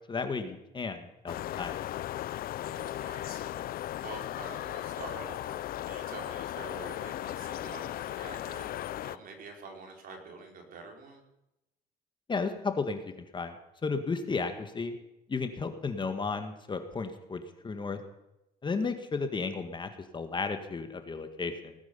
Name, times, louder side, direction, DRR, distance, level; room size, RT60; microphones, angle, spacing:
voice 1, 0.1-1.8 12.3-13.6 13.8-14.9 15.3-18.0 18.6-21.7, left 4 dB, 30° left, 7 dB, 1.8 m, -33 dB
sound 1, 1.3-9.2, left 13 dB, 60° left, 0.6 m, -37 dB
voice 2, 2.7-8.7 8.9-11.2, right 4 dB, 55° right, 2 dB, 4.4 m, -47 dB
19.0 x 9.6 x 6.9 m, 0.89 s
cardioid pair, 110°, 17 cm